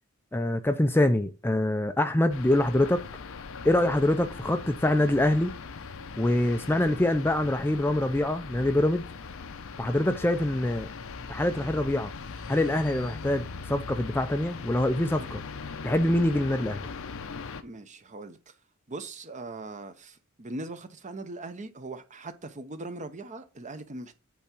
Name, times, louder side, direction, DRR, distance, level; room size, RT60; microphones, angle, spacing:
voice 1, 0.3-3.0 3.6-5.5 6.2-9.1 9.8-10.9 11.3-12.1 12.5-15.4 15.8-16.8, left 1 dB, 10° left, 0.4 m, -25 dB
sound 1, 2.3-17.6, left 4 dB, 65° left, 0.7 m, -40 dB
voice 2, 17.6-18.5 18.9-24.2, right 2 dB, 35° right, 0.9 m, -40 dB
8.5 x 3.6 x 5.9 m
head